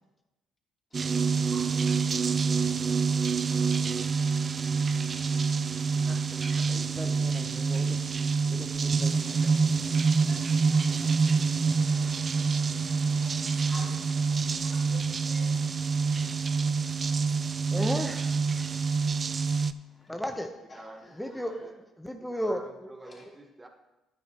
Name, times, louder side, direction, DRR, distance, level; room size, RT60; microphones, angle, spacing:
voice 1, 0.9-6.4 9.4-9.5 10.3-11.3 13.2-16.6 18.6-20.1 20.7-21.5 23.0-23.3, left 2 dB, 30° left, 3.1 m, -53 dB
sound 1, 0.9-19.7, right 5 dB, 40° right, 0.4 m, -27 dB
voice 2, 6.7-8.0 8.5-9.5 11.0-11.1 12.0-12.2 16.3-16.4 17.7-18.4 20.1-20.5 21.1-21.7 22.0-22.9, equal, 5° left, 0.9 m, -35 dB
voice 3, 20.7-21.8 22.2-23.7, right 2 dB, 20° right, 1.3 m, -49 dB
11.0 x 9.3 x 3.0 m
hypercardioid pair, 50°, 0 cm